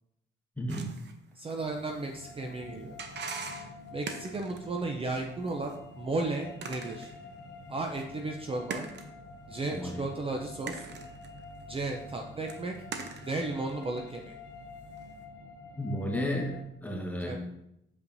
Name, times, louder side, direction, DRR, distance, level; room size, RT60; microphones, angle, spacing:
voice 1, 0.6-0.9 9.7-10.0 15.8-17.4, equal, 10° left, -1 dB, 1.3 m, -33 dB
sound 1, 0.7-5.0 5.5-5.8 6.6-7.4 7.9-8.0 8.7-9.1 9.8-9.9 10.7-12.1 12.5-14.4 15.0-15.1, right 5 dB, 60° right, 0.8 m, -42 dB
voice 2, 1.4-3.0 3.9-7.1 7.7-8.9 9.5-10.9 11.7-12.8 13.3-14.4 17.2-17.4, right 2 dB, 30° right, 2 dB, 0.6 m, -34 dB
sound 2, 1.6-16.6, left 3 dB, 75° left, 0.8 m, -48 dB
7.0 x 5.4 x 2.7 m, 0.83 s
cardioid pair, 90°, 20 cm